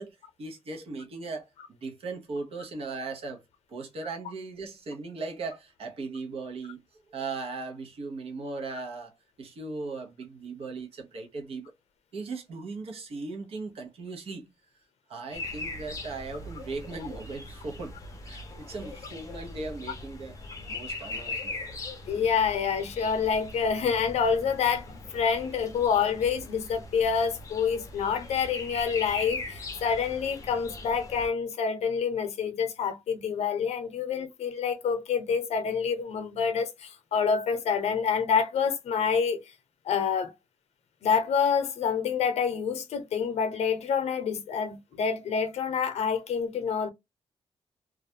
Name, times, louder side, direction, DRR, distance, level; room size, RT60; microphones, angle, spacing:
voice 1, 0.0-1.5 1.8-3.4 3.7-6.8 7.1-9.1 9.4-11.7 12.1-14.5 15.1-18.0 18.2-20.4 20.7-21.6, right 3 dB, 65° right, 0.8 m, -38 dB
sound 1, 15.3-31.3, left 2 dB, 30° left, 0.6 m, -40 dB
voice 2, 22.1-39.4 39.8-40.3 41.0-46.9, left 6 dB, 80° left, 0.6 m, -27 dB
2.3 x 2.2 x 2.7 m
wide cardioid pair, 165°, 11 cm